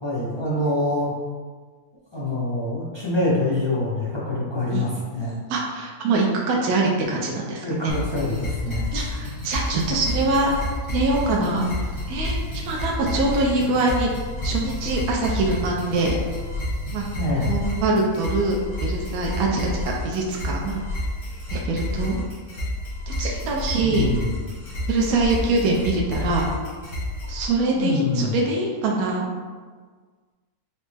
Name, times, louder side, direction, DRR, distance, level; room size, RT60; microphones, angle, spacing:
voice 1, 0.0-1.1 2.1-5.4 7.6-8.9 17.1-17.5 23.8-24.4 27.7-28.4, left 1 dB, 45° left, -7 dB, 0.3 m, -25 dB
voice 2, 5.5-8.0 8.9-10.5 10.9-14.1 14.4-16.1 16.9-17.0 17.4-20.8 21.5-22.2 23.1-24.1 24.9-26.4 27.3-29.3, right 2 dB, 75° right, -1 dB, 1.1 m, -24 dB
sound 1, 7.9-27.5, left 1 dB, 85° left, 2.0 m, -30 dB
5.7 x 2.0 x 3.2 m, 1.5 s
omnidirectional pair, 1.6 m